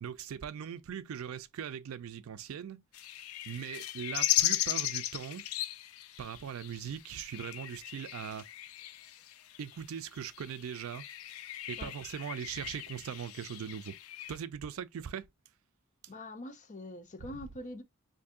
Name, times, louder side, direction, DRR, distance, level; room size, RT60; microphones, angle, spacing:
voice 1, 0.0-2.8 3.5-5.5 6.2-8.5 9.6-11.0 11.7-14.0 14.3-15.3 17.2-17.3, right 8 dB, 75° right, 0.4 m, -40 dB
sound 1, 2.9-14.4, left 13 dB, 85° left, 0.3 m, -37 dB
voice 2, 16.1-17.8, left 1 dB, 35° left, 0.6 m, -44 dB
2.6 x 2.6 x 3.6 m
head